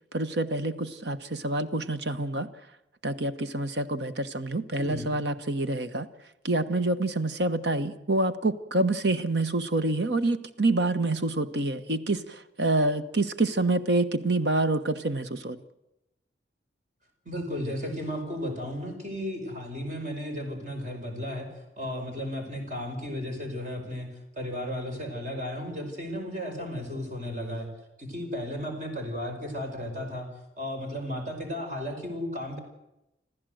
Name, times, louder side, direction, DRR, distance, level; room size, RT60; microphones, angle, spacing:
voice 1, 0.1-2.5 3.0-6.1 6.4-15.6, right 2 dB, 70° right, 10 dB, 1.3 m, -27 dB
voice 2, 4.8-5.1 17.3-21.5 21.8-24.1 24.3-27.7 28.0-30.3 30.6-32.6, left 1 dB, 45° right, 3 dB, 5.2 m, -34 dB
26.0 x 15.0 x 7.9 m, 0.89 s
head